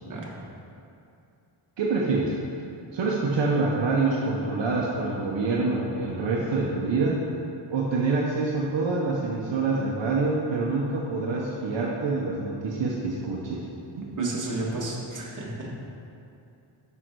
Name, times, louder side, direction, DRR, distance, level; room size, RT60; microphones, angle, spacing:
voice 1, 1.8-2.4 2.9-7.2 7.7-13.7 14.0-14.3, right 3 dB, 65° right, -3 dB, 0.9 m, -26 dB
voice 2, 14.2-15.8, right 2 dB, 40° right, -3 dB, 1.3 m, -32 dB
6.3 x 5.8 x 4.6 m, 2.6 s
wide cardioid pair, 110°, 48 cm